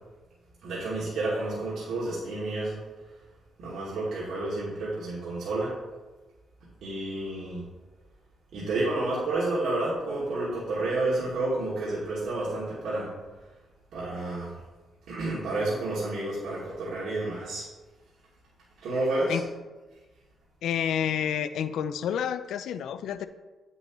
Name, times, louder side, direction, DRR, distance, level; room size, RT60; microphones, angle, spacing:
voice 1, 0.6-2.8 3.6-5.7 6.8-7.7 8.5-13.1 13.9-14.5 15.1-17.6 18.8-19.4, right 2 dB, 75° right, -8 dB, 2.5 m, -30 dB
voice 2, 20.6-23.3, left 9 dB, 85° left, 11 dB, 0.4 m, -29 dB
8.7 x 8.1 x 3.0 m, 1.2 s
cardioid pair, 115°, 0 cm